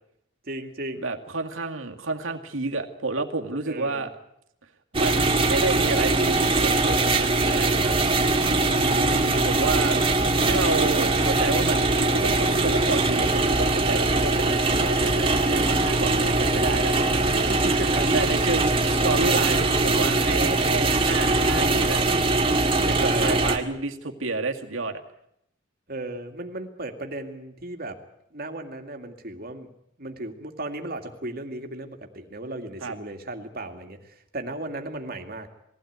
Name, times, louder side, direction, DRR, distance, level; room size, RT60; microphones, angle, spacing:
voice 1, 0.4-1.1 3.7-4.1 8.7-9.3 17.4-18.4 23.0-23.5 25.9-28.0 28.3-29.7 30.0-35.5, right 2 dB, 45° right, 5 dB, 2.3 m, -36 dB
voice 2, 1.0-4.1 4.9-8.0 8.6-10.0 10.5-17.5 18.1-22.2 22.9-25.0 32.8-33.0, right 3 dB, 80° right, 4 dB, 2.2 m, -30 dB
sound 1, 4.9-23.6, right 2 dB, 25° right, 2.0 m, -22 dB
21.0 x 16.0 x 9.5 m, 0.76 s
head